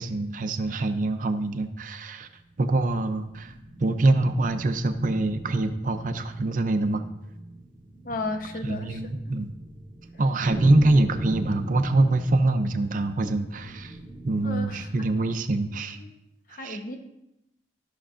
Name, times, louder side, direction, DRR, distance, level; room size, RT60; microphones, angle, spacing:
voice 1, 0.0-2.3 2.6-3.5 3.8-7.0 8.6-9.5 10.2-14.0 14.2-16.0 16.5-16.8, right 2 dB, 45° right, 8 dB, 0.5 m, -24 dB
sound 1, 2.3-15.0, right 1 dB, 15° left, 1.6 m, -39 dB
voice 2, 8.0-9.4 14.4-15.1 15.7-16.1 16.5-17.0, left 2 dB, 50° left, 6 dB, 0.8 m, -35 dB
13.5 x 6.0 x 2.5 m, 0.88 s
head